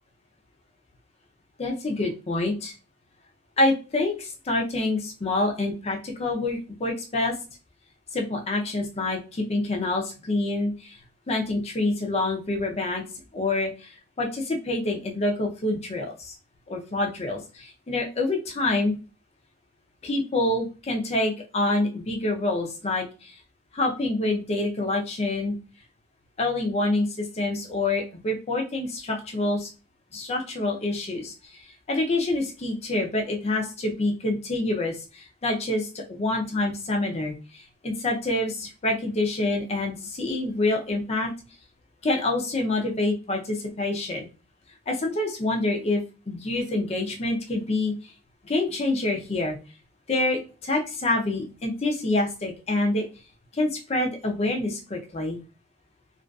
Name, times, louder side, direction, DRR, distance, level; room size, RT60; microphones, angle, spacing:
voice 1, 1.6-2.7 3.6-7.3 8.1-11.0 11.3-13.0 13.3-16.4 16.7-19.0 20.0-23.3 23.7-25.5 26.4-29.7 30.1-41.3 42.0-44.3 44.9-47.9 48.4-49.6 50.1-53.1 53.5-55.4, left 2 dB, 35° left, 1 dB, 0.5 m, -27 dB
2.5 x 2.4 x 2.3 m, 0.32 s
head